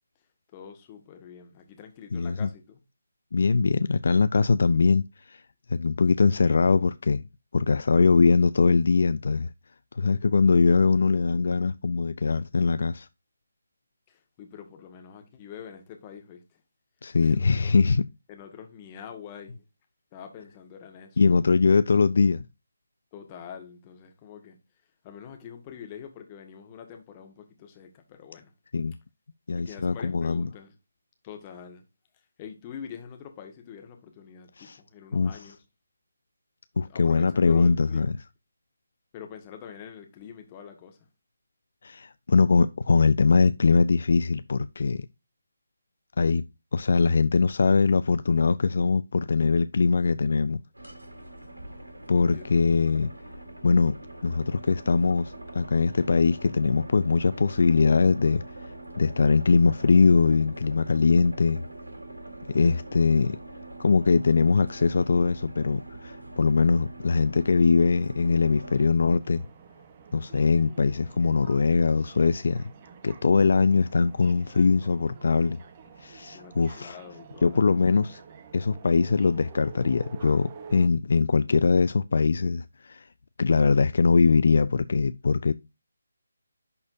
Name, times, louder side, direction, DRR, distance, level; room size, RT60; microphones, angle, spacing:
voice 1, 0.5-2.8 14.1-16.6 17.2-17.7 18.3-19.6 20.1-21.2 23.1-24.6 25.0-28.5 29.6-30.8 31.2-31.8 32.1-35.6 36.8-38.1 39.1-41.1 52.3-52.5 76.3-78.2, left 8 dB, 20° left, 1.6 m, -45 dB
voice 2, 2.1-2.5 3.3-5.4 5.7-7.2 7.5-9.5 9.9-13.1 17.0-18.0 21.2-22.5 28.7-28.9 29.5-30.5 34.6-34.8 35.1-35.3 36.8-38.1 41.8-45.1 46.2-46.4 46.7-50.6 52.1-53.1 53.6-53.9 54.2-58.4 59.0-61.6 62.5-63.4 63.8-69.5 70.1-72.7 73.0-75.6 76.0-77.0 77.4-78.2 78.5-83.1 83.4-85.5, left 4 dB, 55° left, 0.4 m, -22 dB
sound 1, 50.7-68.9, right 2 dB, 85° right, 2.5 m, -43 dB
sound 2, 69.2-80.9, right 6 dB, 30° right, 1.0 m, -48 dB
11.0 x 4.2 x 2.6 m
figure-of-eight pair, 155°, 0 cm